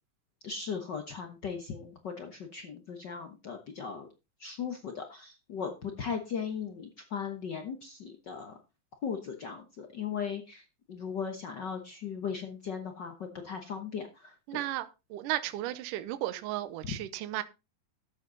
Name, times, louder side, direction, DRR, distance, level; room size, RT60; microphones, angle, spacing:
voice 1, 0.4-4.1 4.4-8.5 9.0-14.6 16.8-16.9, left 6 dB, 75° left, 0.9 m, -38 dB
voice 2, 14.5-17.4, right 14 dB, 75° right, 2.3 m, -34 dB
13.5 x 8.2 x 4.0 m
omnidirectional pair, 4.0 m